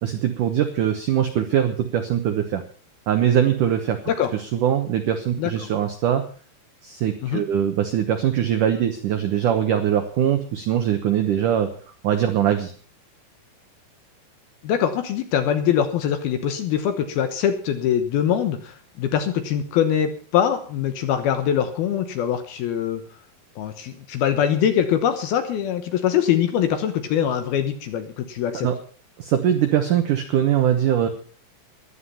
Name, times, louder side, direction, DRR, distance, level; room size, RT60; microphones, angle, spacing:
voice 1, 0.0-2.6 3.1-4.0 4.5-6.3 6.8-11.7 12.0-12.7 28.6-28.7 29.2-31.1, right 10 dB, 80° right, 7 dB, 1.8 m, -22 dB
voice 2, 14.6-23.0 23.6-28.7, left 9 dB, 70° left, 9 dB, 2.6 m, -23 dB
15.5 x 11.5 x 5.6 m, 0.41 s
omnidirectional pair, 5.4 m